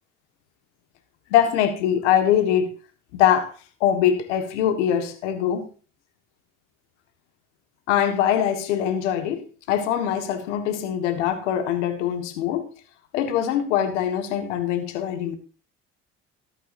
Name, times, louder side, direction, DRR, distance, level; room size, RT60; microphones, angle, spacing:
voice 1, 1.3-2.7 3.1-3.5 3.8-5.6 7.9-9.4 9.7-12.6 13.1-15.4, left 10 dB, 85° left, 1.7 m, -22 dB
13.5 x 11.0 x 2.6 m
hypercardioid pair, 60°, 34 cm